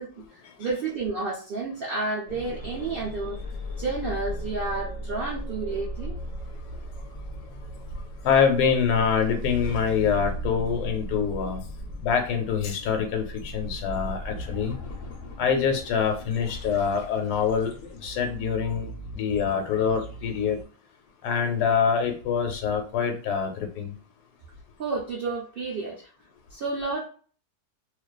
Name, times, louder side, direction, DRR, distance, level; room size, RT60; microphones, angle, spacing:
voice 1, 0.0-3.4 3.8-6.2 24.8-26.1 26.5-27.1, right 3 dB, 70° right, -5 dB, 0.5 m, -31 dB
sound 1, 2.3-20.6, equal, 60° left, 0.8 m, -37 dB
voice 2, 8.2-11.6 12.0-14.7 15.4-17.7 18.0-18.9 19.2-20.6 21.2-23.9, left 6 dB, 80° left, 4 dB, 1.1 m, -25 dB
2.5 x 2.3 x 2.2 m, 0.41 s
omnidirectional pair, 1.7 m